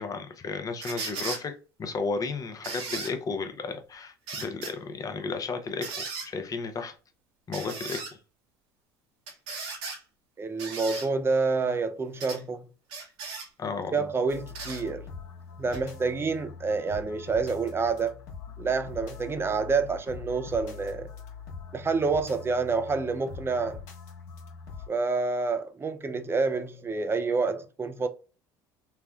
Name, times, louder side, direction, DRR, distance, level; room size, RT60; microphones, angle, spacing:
voice 1, 0.0-6.9 7.5-8.0 13.6-14.1, left 4 dB, 35° left, 0.7 m, -33 dB
sound 1, 0.8-1.4 2.6-3.1 4.3-4.7 5.8-6.3 7.5-8.1 9.3-10.0 10.6-11.1 12.2-12.4 12.9-13.5 14.5-14.8 15.7-15.8, right 4 dB, 70° right, 1.1 m, -36 dB
voice 2, 10.4-12.6 13.9-15.0 15.6-18.1 18.6-21.1 21.7-23.8 24.9-28.1, right 4 dB, 25° right, 0.5 m, -28 dB
sound 2, 14.3-24.9, left 6 dB, 75° left, 1.0 m, -43 dB
3.3 x 2.1 x 2.3 m
hypercardioid pair, 75°, 10 cm